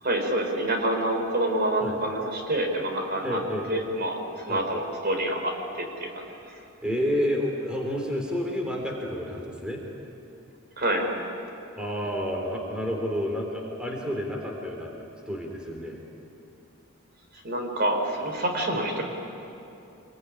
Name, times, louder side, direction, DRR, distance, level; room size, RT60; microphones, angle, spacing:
voice 1, 0.0-3.4 3.7-4.2 4.5-6.2 10.8-11.1 17.4-19.0, right 1 dB, 50° right, 3 dB, 4.2 m, -27 dB
voice 2, 3.2-3.7 4.5-4.6 6.8-9.8 11.8-16.0, equal, 5° right, 0 dB, 3.4 m, -30 dB
27.0 x 21.5 x 9.8 m, 2.8 s
head